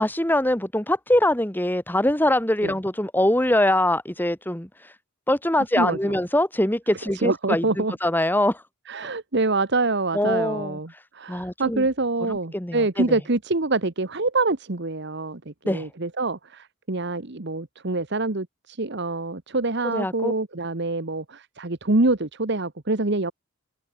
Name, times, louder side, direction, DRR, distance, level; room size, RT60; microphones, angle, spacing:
voice 1, 0.0-4.7 5.3-8.6 10.1-10.8 11.3-11.9 12.3-13.2 15.6-15.9 19.9-20.3, left 1 dB, 10° left, 1.9 m, -23 dB
voice 2, 5.6-6.2 7.2-7.9 8.9-23.3, right 2 dB, 55° right, 1.3 m, -26 dB
head